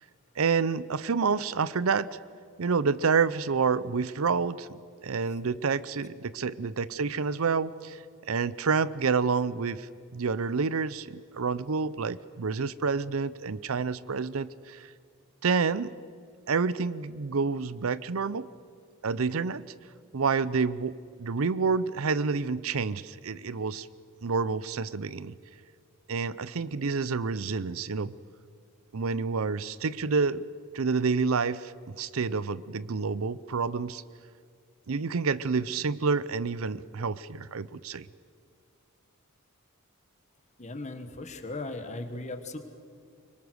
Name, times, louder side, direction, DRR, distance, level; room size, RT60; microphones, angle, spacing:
voice 1, 0.4-2.2 2.6-14.9 15.4-15.9 16.5-18.5 19.0-19.6 20.1-23.9 24.2-25.3 26.1-28.1 28.9-30.4 30.7-34.0 34.9-38.1, right 5 dB, 75° right, 17 dB, 0.6 m, -28 dB
voice 2, 40.6-42.6, left 2 dB, 35° left, 7 dB, 1.6 m, -37 dB
24.5 x 23.0 x 6.4 m, 2.2 s
head